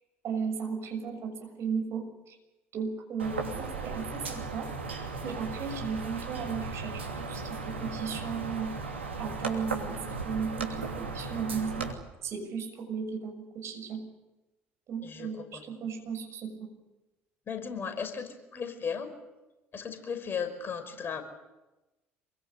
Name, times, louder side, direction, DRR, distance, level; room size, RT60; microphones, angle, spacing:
voice 1, 0.2-2.4 2.7-4.7 5.2-8.7 9.2-11.9 12.2-14.0 14.9-16.7, right 6 dB, 45° right, 4 dB, 6.7 m, -35 dB
sound 1, 3.2-11.9, right 4 dB, 85° right, 2.9 m, -36 dB
voice 2, 15.0-15.6 17.5-19.1 19.7-21.2, left 6 dB, 35° left, 8 dB, 5.3 m, -36 dB
27.5 x 23.0 x 8.2 m, 1.1 s
figure-of-eight pair, 55°, 6 cm